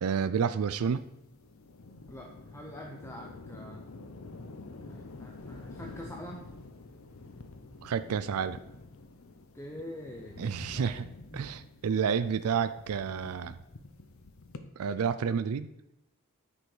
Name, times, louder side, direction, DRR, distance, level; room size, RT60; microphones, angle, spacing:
voice 1, 0.0-1.0 7.8-8.6 10.4-11.1 11.3-13.6 14.8-15.7, right 6 dB, 85° right, 13 dB, 0.4 m, -30 dB
sound 1, 0.8-14.6, left 3 dB, 70° left, 0.7 m, -48 dB
voice 2, 2.1-3.8 4.8-6.5 9.5-10.4 10.7-10.9 11.3-11.5, left 1 dB, 10° left, 0 dB, 0.7 m, -45 dB
9.4 x 5.3 x 4.9 m, 0.85 s
head